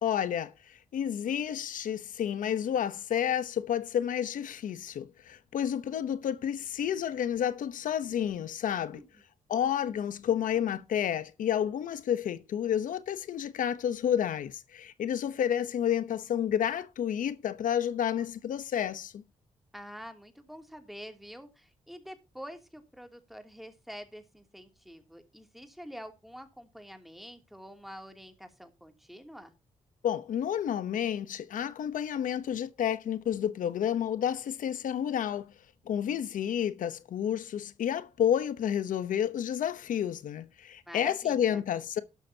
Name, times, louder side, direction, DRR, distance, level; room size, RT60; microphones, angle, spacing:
voice 1, 0.0-9.0 9.5-19.2 30.0-35.5 35.9-42.0, left 9 dB, 85° left, 0.9 m, -30 dB
voice 2, 19.7-29.5 40.9-41.6, equal, ahead, 2.8 m, -46 dB
12.0 x 11.5 x 2.9 m
cardioid pair, 90°, 13 cm